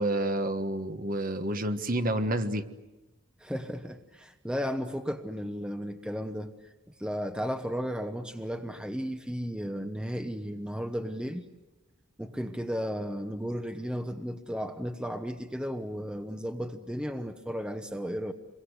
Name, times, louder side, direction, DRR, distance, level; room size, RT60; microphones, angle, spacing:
voice 1, 0.0-2.6, right 1 dB, 40° right, 8 dB, 1.5 m, -29 dB
voice 2, 3.4-6.5 7.0-11.4 12.2-18.3, equal, 5° right, 7 dB, 1.0 m, -34 dB
28.0 x 23.0 x 8.2 m, 1.0 s
head